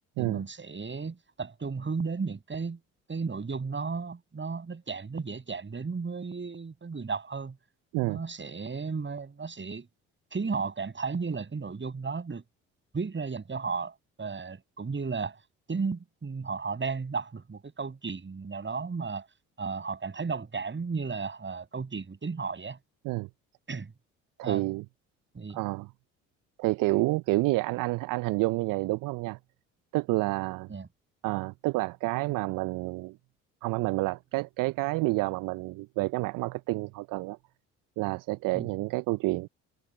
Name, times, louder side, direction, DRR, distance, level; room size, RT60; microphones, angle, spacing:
voice 1, 0.2-2.8 3.1-7.6 8.0-9.9 10.3-12.4 12.9-15.4 15.7-19.3 19.6-22.8 23.7-23.9 24.4-24.6 25.3-25.6 30.7-30.9 38.5-38.7, right 4 dB, 30° right, 7.7 m, -34 dB
voice 2, 24.4-24.8 25.5-25.9 26.6-29.4 29.9-30.7 31.2-33.2 33.6-37.4 38.0-39.5, right 21 dB, 60° right, 0.6 m, -29 dB
hypercardioid pair, 55°, 37 cm